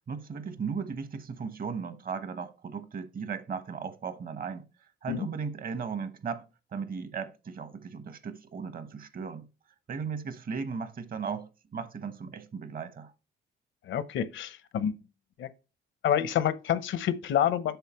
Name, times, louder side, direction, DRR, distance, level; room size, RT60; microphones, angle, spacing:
voice 1, 0.1-4.7 5.0-9.5 9.9-13.1, right 6 dB, 45° right, 1.1 m, -36 dB
voice 2, 13.8-14.9 15.4-15.5 16.0-17.8, left 10 dB, 75° left, 0.8 m, -28 dB
8.1 x 6.5 x 3.0 m
cardioid pair, 90°, 20 cm